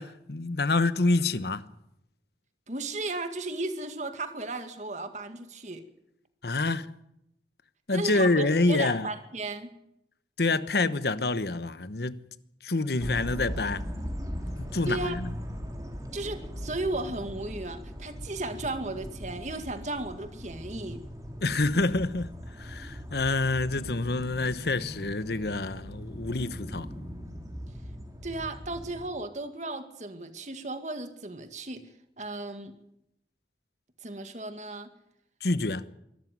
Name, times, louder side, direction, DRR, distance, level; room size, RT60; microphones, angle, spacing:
voice 1, 0.0-1.6 6.4-6.9 7.9-9.1 10.4-12.3 12.6-13.8 14.6-15.3 21.4-26.9 35.4-35.8, left 2 dB, 70° left, 1.1 m, -27 dB
voice 2, 2.7-5.8 7.9-9.7 14.9-15.2 16.1-21.0 28.2-31.9 32.2-32.7 34.0-34.9, right 2 dB, 40° right, 2.1 m, -35 dB
sound 1, 13.0-29.1, equal, 20° right, 3.2 m, -39 dB
24.0 x 13.5 x 9.6 m
head